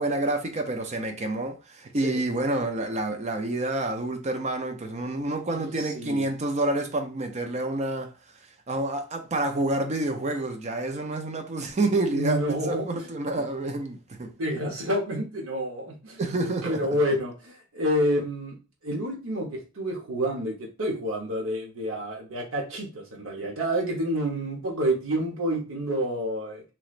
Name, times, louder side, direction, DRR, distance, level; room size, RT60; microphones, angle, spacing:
voice 1, 0.0-14.3 16.2-16.9, right 2 dB, 30° right, 0.5 m, -28 dB
voice 2, 12.1-12.9 14.4-16.2 16.6-18.6 18.8-26.6, equal, 65° right, 0.9 m, -28 dB
3.0 x 3.0 x 2.4 m
head